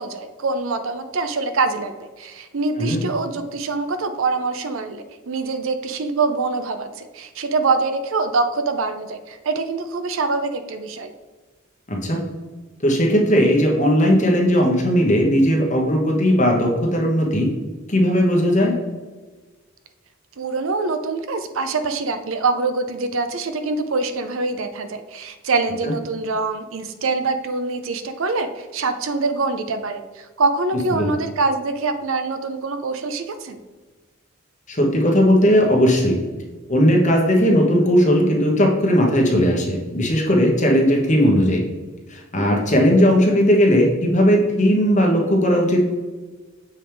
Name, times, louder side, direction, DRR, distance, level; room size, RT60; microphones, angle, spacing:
voice 1, 0.0-11.1 20.4-33.6, right 3 dB, 65° right, 9 dB, 0.5 m, -24 dB
voice 2, 11.9-12.2 12.8-17.5 17.9-18.8 25.8-25.9 31.0-31.1 34.7-36.2 36.7-41.6 42.1-45.8, equal, 35° left, 0 dB, 1.2 m, -17 dB
7.2 x 3.5 x 4.5 m, 1.3 s
head